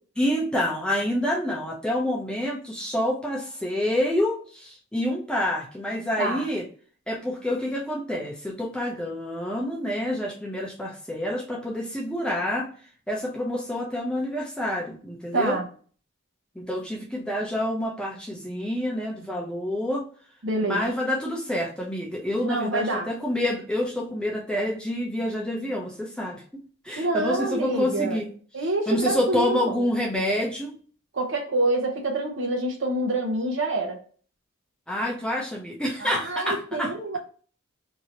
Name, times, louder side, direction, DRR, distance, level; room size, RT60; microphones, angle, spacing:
voice 1, 0.2-6.7 7.1-12.7 13.1-15.6 16.6-20.0 20.6-26.4 26.8-28.3 28.9-30.7 34.9-37.2, left 1 dB, 5° left, -2 dB, 0.5 m, -28 dB
voice 2, 15.3-15.7 20.4-20.8 22.4-23.1 27.0-28.2 28.5-29.8 31.1-34.0 36.0-37.2, right 2 dB, 60° right, 2 dB, 0.8 m, -26 dB
2.9 x 2.6 x 2.7 m, 0.43 s
head